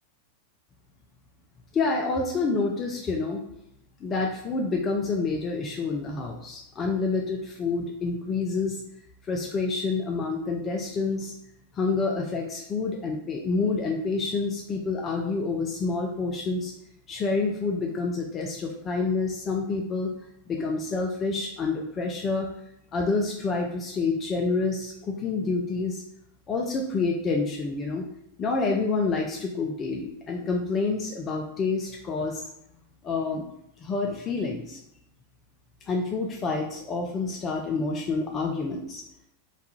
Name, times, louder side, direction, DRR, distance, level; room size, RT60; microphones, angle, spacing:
voice 1, 1.7-3.4 4.0-8.8 9.2-11.3 11.7-16.7 17.1-20.1 20.5-22.5 22.9-26.0 26.5-28.0 28.4-32.5 33.0-33.4 33.8-34.8 35.9-39.0, left 4 dB, 25° left, 1 dB, 0.3 m, -28 dB
2.3 x 2.2 x 2.9 m, 0.77 s
figure-of-eight pair, 90°, 0 cm